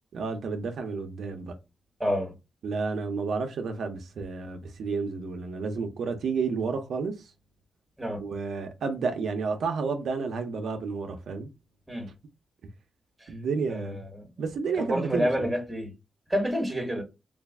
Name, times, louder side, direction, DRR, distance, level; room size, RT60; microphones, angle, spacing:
voice 1, 0.1-1.6 2.6-7.1 8.2-11.5 13.3-14.0 14.4-15.5, right 4 dB, 80° right, 0.6 m, -31 dB
voice 2, 2.0-2.3 8.0-8.2 11.9-12.1 13.7-14.0 14.8-15.9 16.3-17.0, equal, 5° right, 1.2 m, -28 dB
3.3 x 2.3 x 3.4 m
cardioid pair, 100°, 0 cm